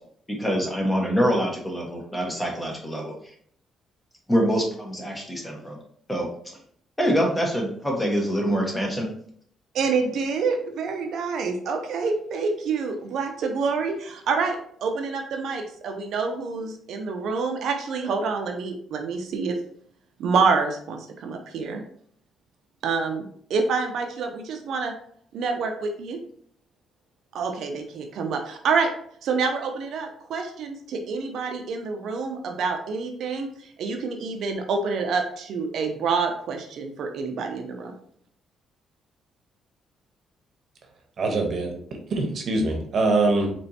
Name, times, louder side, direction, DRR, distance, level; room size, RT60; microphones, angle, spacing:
voice 1, 0.3-3.1 4.3-5.8 6.1-6.6 7.0-9.1, equal, 10° left, 0 dB, 1.2 m, -25 dB
voice 2, 9.7-19.6 20.2-21.8 22.8-24.9 25.3-26.2 27.3-28.9 29.2-37.9, right 4 dB, 75° right, 4 dB, 0.5 m, -27 dB
voice 3, 41.2-41.7 42.1-43.5, right 2 dB, 55° right, 3 dB, 0.9 m, -23 dB
4.2 x 3.0 x 2.7 m, 0.63 s
cardioid pair, 90°, 0 cm